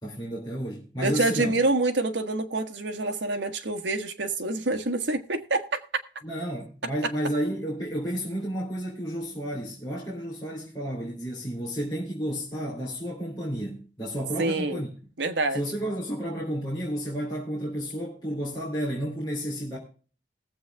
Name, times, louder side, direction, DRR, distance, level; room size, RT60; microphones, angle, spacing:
voice 1, 0.0-1.5 6.2-14.9 15.5-19.8, equal, 25° left, 3.1 m, -31 dB
voice 2, 1.0-5.6 14.4-14.8 15.2-15.6, right 2 dB, 85° right, 1.4 m, -26 dB
19.0 x 7.8 x 3.4 m
head